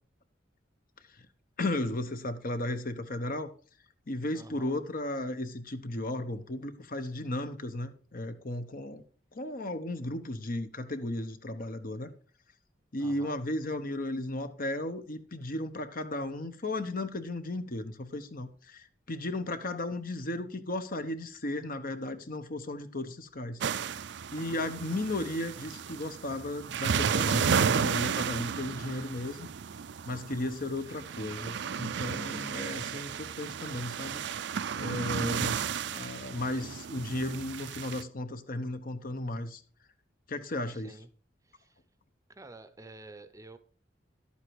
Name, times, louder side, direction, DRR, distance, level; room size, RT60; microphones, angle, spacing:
voice 1, 1.6-3.5 4.1-9.0 9.3-12.1 12.9-23.6 24.3-29.5 30.0-34.2 34.7-35.6 35.8-39.6 40.3-40.9, left 1 dB, 50° left, 1.1 m, -35 dB
voice 2, 4.3-4.8 13.0-13.4 40.7-41.1 41.4-41.8 42.3-43.6, right 2 dB, 20° right, 0.7 m, -50 dB
sound 1, 23.6-38.0, right 6 dB, 65° right, 0.5 m, -33 dB
11.5 x 8.5 x 4.7 m
head